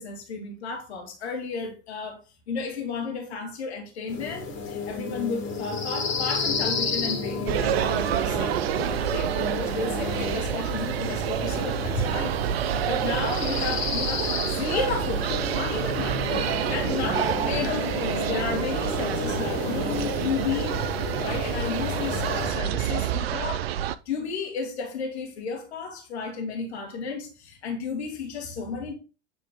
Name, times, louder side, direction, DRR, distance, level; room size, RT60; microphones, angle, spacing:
voice 1, 0.0-8.6 8.9-20.8 21.2-23.7 24.1-28.9, left 5 dB, 65° left, 1.7 m, -33 dB
sound 1, 4.1-22.5, left 3 dB, 35° left, 2.1 m, -32 dB
sound 2, 7.5-23.9, right 10 dB, 60° right, 0.5 m, -28 dB
8.3 x 3.3 x 3.5 m
figure-of-eight pair, 85°, 35 cm